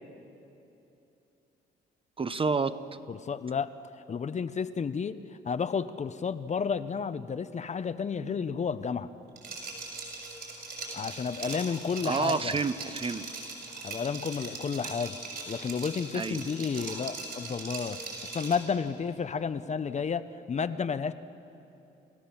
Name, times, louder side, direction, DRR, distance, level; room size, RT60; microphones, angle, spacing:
voice 1, 2.2-2.7 12.0-13.2 16.1-16.4, right 4 dB, 25° right, 12 dB, 0.7 m, -29 dB
voice 2, 3.1-3.7 4.1-5.2 5.5-9.1 10.9-12.6 13.8-15.2 15.5-18.0 18.3-21.1, left 6 dB, 35° left, 12 dB, 0.7 m, -31 dB
Liquid, 9.4-18.7, right 3 dB, 55° right, 6.3 m, -40 dB
29.0 x 15.0 x 7.2 m, 2.9 s
cardioid pair, 90°, 20 cm